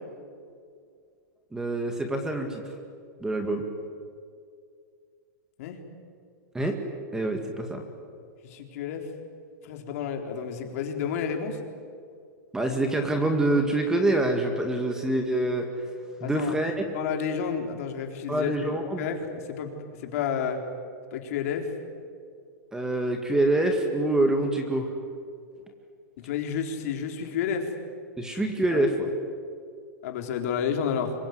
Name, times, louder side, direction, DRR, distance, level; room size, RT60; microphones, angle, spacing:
voice 1, 1.5-2.6 3.2-3.6 6.5-6.8 7.1-7.8 12.5-15.7 16.2-16.7 18.3-19.1 22.7-24.9 28.2-29.1, right 2 dB, 5° right, 4 dB, 2.0 m, -25 dB
voice 2, 8.4-9.1 9.6-11.6 16.2-16.6 16.9-18.5 19.0-20.6 21.1-21.7 26.2-27.7 28.7-28.8 30.0-31.1, left 7 dB, 50° left, 3 dB, 4.1 m, -30 dB
26.5 x 23.0 x 9.6 m, 2.3 s
supercardioid pair, 160°, 10 cm